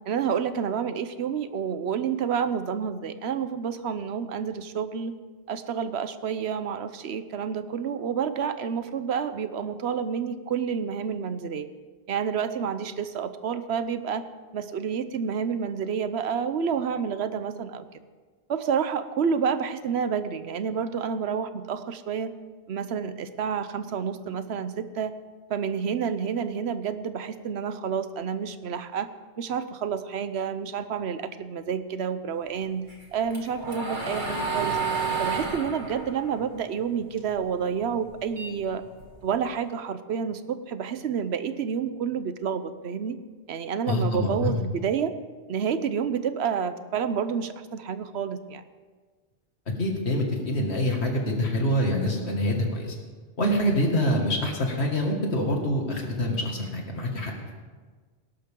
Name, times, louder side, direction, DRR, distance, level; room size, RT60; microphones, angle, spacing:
voice 1, 0.1-5.2 5.5-11.7 12.1-14.2 14.5-17.9 18.5-22.3 22.7-25.1 25.5-29.1 29.4-34.8 35.2-38.8 39.2-43.2 43.5-45.1 45.5-48.6, right 7 dB, 80° right, 12 dB, 1.0 m, -29 dB
sound 1, 32.9-37.4 37.8-39.3, right 4 dB, 50° right, 1.9 m, -31 dB
voice 2, 43.9-44.6 49.8-53.0 53.4-57.3, equal, 85° left, 1 dB, 2.4 m, -25 dB
19.0 x 11.5 x 3.7 m, 1.5 s
omnidirectional pair, 1.1 m